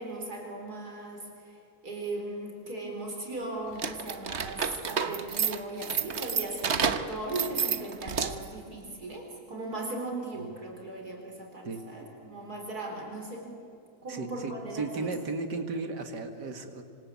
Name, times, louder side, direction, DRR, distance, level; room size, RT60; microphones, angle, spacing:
voice 1, 0.0-13.5 14.0-15.2, right 2 dB, 65° right, 1 dB, 4.5 m, -38 dB
sound 1, 3.7-8.6, right 6 dB, 45° right, 1.3 m, -30 dB
voice 2, 14.1-16.8, right 3 dB, 85° right, 6 dB, 2.6 m, -35 dB
27.0 x 26.0 x 8.7 m, 2.6 s
omnidirectional pair, 1.8 m